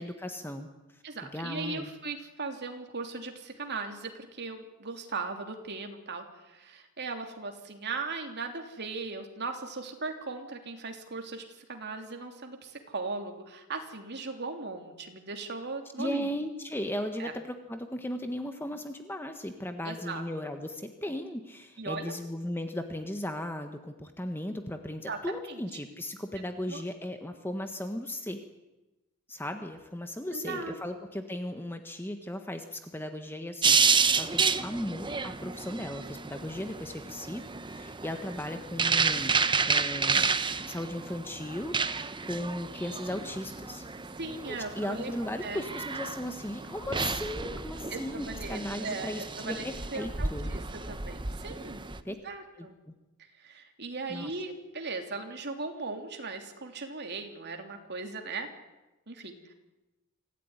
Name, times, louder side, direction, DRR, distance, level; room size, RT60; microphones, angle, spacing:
voice 1, 0.0-1.9 16.0-28.4 29.3-37.4 37.7-39.3 39.7-40.3 40.7-43.8 44.7-50.5 52.0-52.1 52.6-52.7 54.1-54.3, left 1 dB, 10° left, 6 dB, 1.5 m, -36 dB
voice 2, 1.0-16.3 17.2-17.3 19.8-20.2 21.8-22.1 25.1-25.6 26.6-26.8 30.3-30.8 44.2-45.6 47.9-49.6 49.9-50.6 50.9-52.8 53.4-58.5 59.1-59.5, right 3 dB, 50° right, 4 dB, 3.2 m, -38 dB
sound 1, 33.6-52.0, right 5 dB, 20° right, 1.0 m, -31 dB
26.0 x 16.0 x 9.8 m, 1.0 s
head